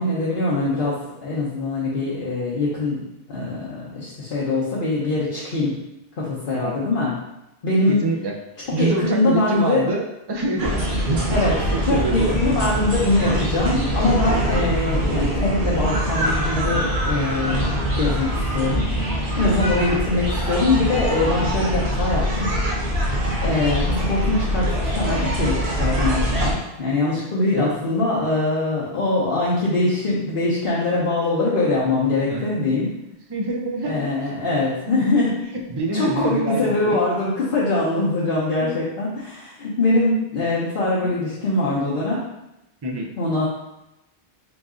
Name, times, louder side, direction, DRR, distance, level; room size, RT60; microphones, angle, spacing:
voice 1, 0.0-3.0 3.3-5.8 6.2-7.1 7.6-8.0 8.8-9.9 11.3-11.5 11.8-22.5 22.9-32.9 33.8-35.4 35.9-42.2 43.2-43.5, left 2 dB, 60° left, -7 dB, 1.0 m, -23 dB
voice 2, 7.9-8.4 8.7-11.4 11.7-12.4 19.4-19.8 27.5-27.7 32.3-32.5 33.3-34.4 35.5-37.0 38.6-38.7 41.0-41.1 42.8-43.1, right 2 dB, 35° right, 1 dB, 0.4 m, -26 dB
sound 1, 10.6-26.5, equal, 80° right, 1.1 m, -23 dB
3.9 x 2.6 x 3.6 m, 0.91 s
omnidirectional pair, 1.0 m